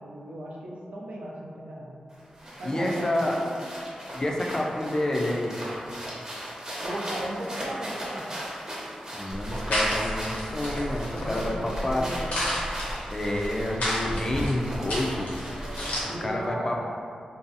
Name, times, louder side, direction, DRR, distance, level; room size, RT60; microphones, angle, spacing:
voice 1, 0.0-2.0 2.6-3.6 6.8-8.3 11.1-12.5 15.5-16.9, right 1 dB, 80° right, -4 dB, 0.4 m, -37 dB
sound 1, 2.1-16.2, equal, 30° right, 0.7 m, -38 dB
voice 2, 2.6-3.3 4.1-5.6 9.1-12.1 13.1-15.3 16.2-16.8, left 1 dB, 25° left, 0 dB, 0.3 m, -28 dB
sound 2, 9.3-16.0, equal, 80° left, 0.8 m, -31 dB
2.5 x 2.3 x 2.6 m, 2.3 s
wide cardioid pair, 110°, 2 cm